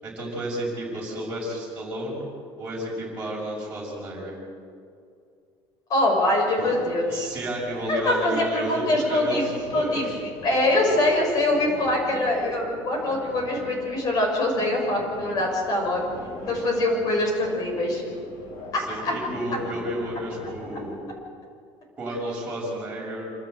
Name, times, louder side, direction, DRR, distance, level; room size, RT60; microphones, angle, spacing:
voice 1, 0.0-2.2 2.6-4.4 6.6-6.7 7.1-10.2 18.9-20.9 22.0-23.3, right 1 dB, 15° right, -6 dB, 5.7 m, -31 dB
voice 2, 5.9-7.3 7.9-10.1 10.4-16.1 16.5-18.0 18.7-19.1, left 1 dB, 40° left, 0 dB, 6.1 m, -23 dB
sound 1, 6.6-21.0, left 1 dB, 60° left, 6.1 m, -42 dB
27.0 x 13.5 x 7.9 m, 2.4 s
cardioid pair, 155°, 10 cm